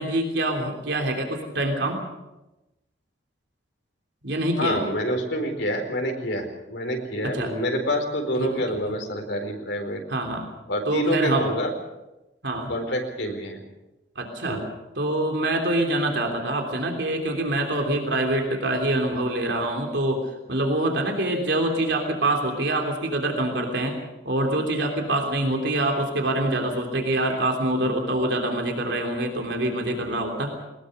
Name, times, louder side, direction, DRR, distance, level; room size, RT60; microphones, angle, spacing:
voice 1, 0.0-2.0 4.2-4.8 7.2-7.5 8.4-8.5 8.9-9.0 10.1-10.4 10.9-11.5 12.4-12.7 14.1-14.6 15.0-20.2 20.5-23.9 24.2-30.5, right 1 dB, 70° right, 2 dB, 3.2 m, -25 dB
voice 2, 4.6-10.0 10.7-11.7 12.7-13.6 14.5-14.6, equal, 75° left, 3 dB, 4.5 m, -27 dB
21.0 x 20.5 x 6.6 m, 1.0 s
head